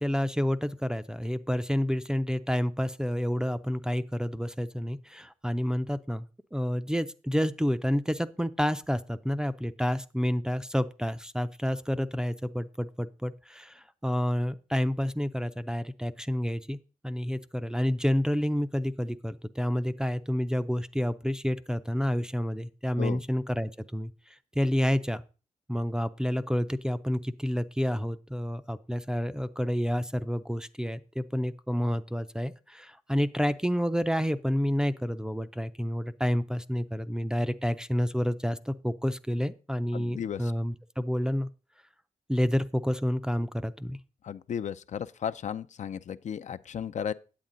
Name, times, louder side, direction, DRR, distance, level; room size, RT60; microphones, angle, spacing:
voice 1, 0.0-6.3 6.5-16.8 17.0-24.1 24.6-25.2 25.7-41.5 42.3-44.0, equal, 5° right, 0.4 m, -29 dB
voice 2, 39.9-40.5 44.2-47.1, left 8 dB, 55° left, 0.4 m, -34 dB
8.8 x 8.1 x 3.8 m
cardioid pair, 90°, 14 cm